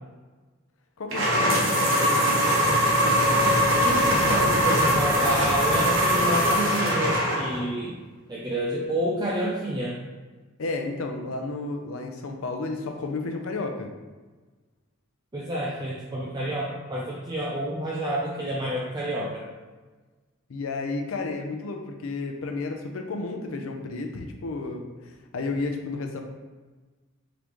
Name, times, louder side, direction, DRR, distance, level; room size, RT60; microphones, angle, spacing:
voice 1, 1.0-1.8 10.6-13.9 20.5-24.8 25.3-26.2, left 3 dB, 90° left, 4 dB, 0.5 m, -32 dB
sound 1, 1.1-7.7, equal, 70° right, 1.0 m, -22 dB
voice 2, 3.4-8.0 8.3-10.0 15.3-19.4, right 1 dB, 20° right, -4 dB, 0.4 m, -29 dB
3.8 x 3.5 x 3.0 m, 1.3 s
head